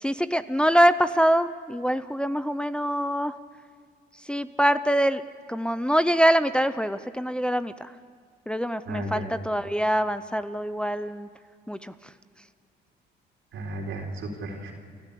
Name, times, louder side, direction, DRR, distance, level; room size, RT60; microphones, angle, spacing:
voice 1, 0.0-3.3 4.2-5.2 5.5-7.9 8.5-11.3 11.7-11.9, equal, 5° left, 11 dB, 0.6 m, -24 dB
voice 2, 8.9-9.2 13.5-14.7, right 1 dB, 85° right, 1 dB, 4.2 m, -34 dB
29.0 x 12.5 x 8.5 m, 2.1 s
cardioid pair, 90°, 20 cm